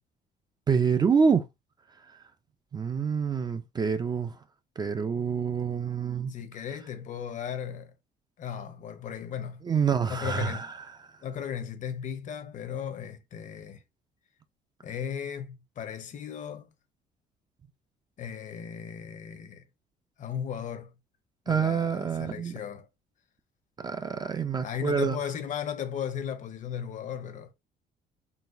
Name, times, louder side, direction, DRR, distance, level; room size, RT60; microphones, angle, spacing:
voice 1, 0.7-1.4 2.7-4.3 4.8-6.3 9.7-10.7 21.5-22.5 23.8-25.2, right 6 dB, 25° right, 0.3 m, -26 dB
voice 2, 6.3-7.9 8.4-9.6 10.1-10.7 11.2-13.8 14.8-16.7 18.2-19.6 20.2-20.9 21.5-22.9 24.6-27.5, left 8 dB, 50° left, 0.6 m, -36 dB
3.9 x 2.2 x 2.5 m
cardioid pair, 110°, 17 cm